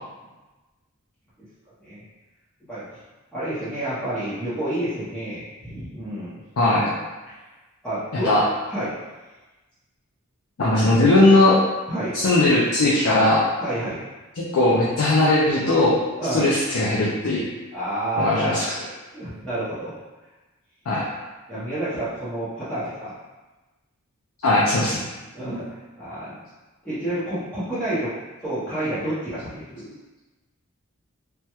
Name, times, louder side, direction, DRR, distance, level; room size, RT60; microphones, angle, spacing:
voice 1, 3.3-6.4 7.3-7.5 7.8-8.3 8.7-9.0 11.9-12.2 13.6-14.0 16.2-16.5 17.7-18.6 19.1-20.0 21.5-23.1 25.3-26.3 26.8-28.1 28.4-29.9, right 1 dB, 5° left, -14 dB, 0.7 m, -29 dB
voice 2, 6.6-6.9 8.2-8.4 10.6-11.6 12.1-13.4 14.4-16.0 16.3-17.5 18.2-18.6 20.9-21.0 24.4-25.0, left 2 dB, 65° left, -7 dB, 0.5 m, -18 dB
3.4 x 2.1 x 2.9 m, 1.2 s
head